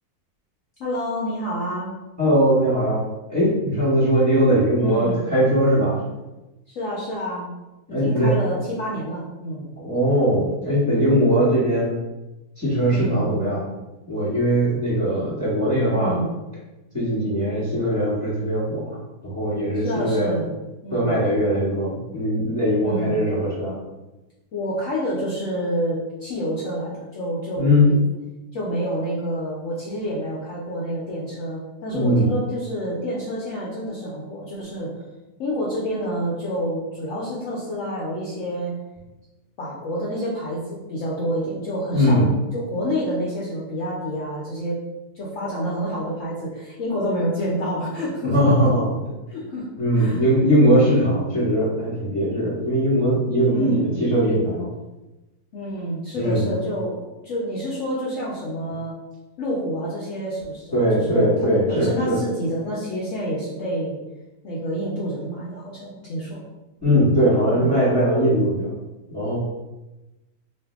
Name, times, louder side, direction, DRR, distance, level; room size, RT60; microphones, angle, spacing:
voice 1, 0.8-1.9 4.8-5.2 6.7-7.5 7.9-9.7 12.9-13.2 15.9-16.3 19.8-20.5 20.8-21.1 22.8-23.2 24.5-28.0 28.5-34.9 35.4-38.8 39.6-44.8 45.1-48.5 49.3-49.7 50.0-50.2 53.5-53.9 55.5-58.9 59.4-64.0 64.4-66.4 67.5-67.7, equal, 65° left, -6 dB, 0.8 m, -28 dB
voice 2, 2.2-3.0 3.3-6.0 7.9-8.3 9.8-11.9 12.6-13.6 14.1-16.2 16.9-19.0 19.2-20.3 20.9-23.8 27.6-27.9 31.9-32.3 41.9-42.3 48.2-48.9 49.8-54.7 56.1-56.5 60.7-62.2 66.8-68.7 69.1-69.4, equal, 10° right, -11 dB, 1.2 m, -20 dB
2.6 x 2.6 x 3.4 m, 1.0 s
omnidirectional pair, 1.7 m